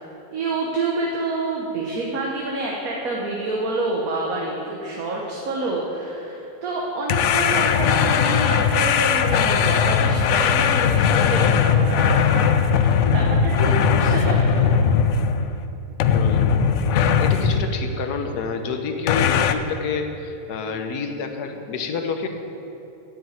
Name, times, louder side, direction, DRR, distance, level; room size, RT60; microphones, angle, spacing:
voice 1, 0.3-14.8, right 2 dB, 65° right, -3 dB, 1.5 m, -28 dB
sound 1, 7.1-15.6 16.0-17.7 19.1-19.5, left 7 dB, 70° left, 0.7 m, -19 dB
voice 2, 16.1-22.3, left 5 dB, 90° left, 6 dB, 1.4 m, -29 dB
8.4 x 7.6 x 8.4 m, 2.9 s
omnidirectional pair, 1.6 m